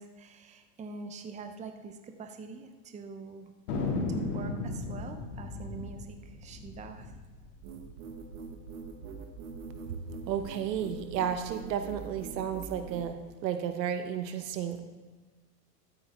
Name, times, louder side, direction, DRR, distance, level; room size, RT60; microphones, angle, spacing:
voice 1, 0.0-3.5 4.1-7.1, right 4 dB, 15° right, 6 dB, 0.7 m, -44 dB
Thunder, 3.7-8.5 8.8-8.9 9.1-9.6 10.1-11.3, left 3 dB, 70° left, 2.5 m, -36 dB
sound 1, 7.6-13.1, right 5 dB, 60° right, 1.4 m, -43 dB
voice 2, 10.3-14.8, right 8 dB, 85° right, 8 dB, 1.1 m, -33 dB
13.5 x 8.6 x 3.5 m, 1.3 s
hypercardioid pair, 115°, 48 cm